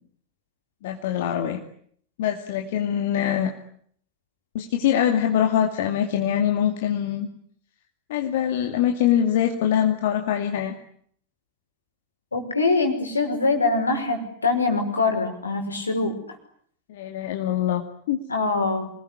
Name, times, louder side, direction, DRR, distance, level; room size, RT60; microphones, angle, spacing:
voice 1, 0.8-1.6 2.2-3.5 4.5-7.3 8.1-10.7 16.9-18.2, left 10 dB, 55° left, 4 dB, 2.5 m, -23 dB
voice 2, 12.3-16.4 18.3-18.9, left 3 dB, 80° left, 4 dB, 5.5 m, -23 dB
27.0 x 20.0 x 10.0 m, 0.64 s
figure-of-eight pair, 90°, 0 cm